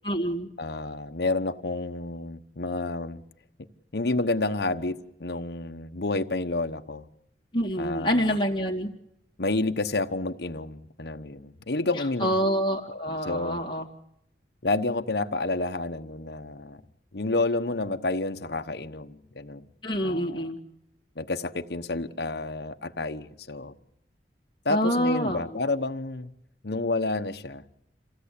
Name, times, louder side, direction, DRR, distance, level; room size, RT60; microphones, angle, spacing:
voice 1, 0.0-0.5 7.5-8.9 12.0-13.9 19.8-20.6 24.7-25.6, equal, 25° left, 2.2 m, -27 dB
voice 2, 0.6-3.2 3.9-7.1 7.8-8.4 9.4-12.4 12.9-13.6 14.6-16.8 17.1-19.7 20.0-20.5 21.2-23.7 24.6-26.3 26.6-27.6, left 2 dB, 70° left, 1.1 m, -30 dB
27.0 x 16.0 x 8.5 m
head